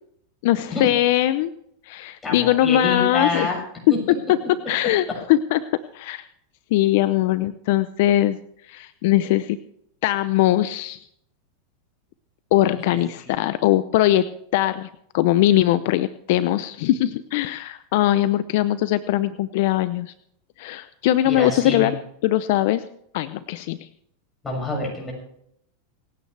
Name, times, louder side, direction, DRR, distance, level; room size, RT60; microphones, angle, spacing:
voice 1, 0.4-1.5 1.9-3.5 4.1-4.2 4.7-5.6 5.9-6.3 6.7-8.4 8.7-9.6 10.0-11.0 12.5-14.3 14.5-14.9 15.1-20.1 20.6-21.9 22.2-22.8 23.1-23.9, left 14 dB, 65° left, 14 dB, 0.6 m, -21 dB
voice 2, 2.2-3.6 3.9-4.0 12.9-13.3 21.2-21.9 24.4-25.1, left 2 dB, 15° left, -1 dB, 6.6 m, -27 dB
27.0 x 9.3 x 3.3 m, 0.72 s
supercardioid pair, 125°, 0 cm